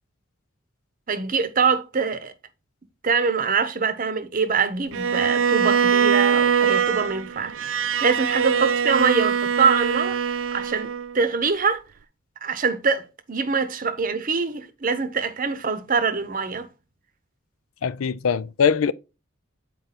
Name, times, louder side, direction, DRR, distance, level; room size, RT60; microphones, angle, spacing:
voice 1, 1.1-2.3 3.0-7.6 8.0-11.8 12.4-16.7, right 5 dB, 40° right, 0.8 m, -24 dB
Bowed string instrument, 4.9-11.2, right 7 dB, 70° right, 0.4 m, -22 dB
voice 2, 17.8-18.9, left 6 dB, 90° left, 0.5 m, -22 dB
8.0 x 4.6 x 4.1 m
head